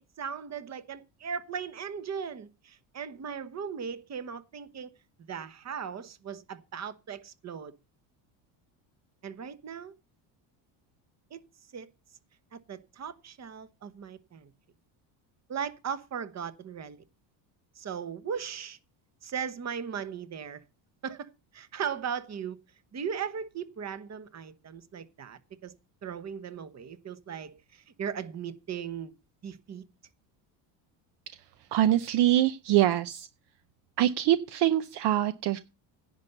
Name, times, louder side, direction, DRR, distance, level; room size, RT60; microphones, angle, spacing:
voice 1, 0.0-4.9 5.2-7.8 9.2-9.9 11.3-11.4 11.7-11.9 12.5-14.5 15.5-17.0 17.8-18.8 19.2-20.6 21.0-22.6 22.9-25.7 26.0-29.1 29.4-29.8, right 7 dB, 35° right, 1.1 m, -38 dB
voice 2, 31.7-33.3 34.0-35.6, right 13 dB, 60° right, 0.7 m, -24 dB
10.5 x 5.4 x 7.9 m
supercardioid pair, 95°, 46 cm